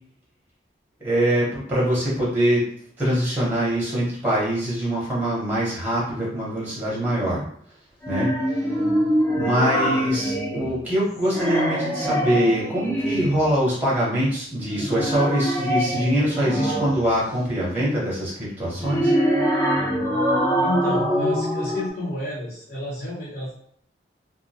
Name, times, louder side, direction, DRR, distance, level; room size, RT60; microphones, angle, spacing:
voice 1, 1.0-2.6 3.0-7.4 8.1-8.3 9.3-19.1, equal, 10° right, -6 dB, 0.7 m, -23 dB
sound 1, 8.0-10.9 11.2-13.5 14.6-17.2 18.6-21.9, equal, 15° left, 0.4 m, -24 dB
voice 2, 20.6-23.5, left 1 dB, 55° left, -7 dB, 0.8 m, -30 dB
2.3 x 2.1 x 2.7 m, 0.62 s
head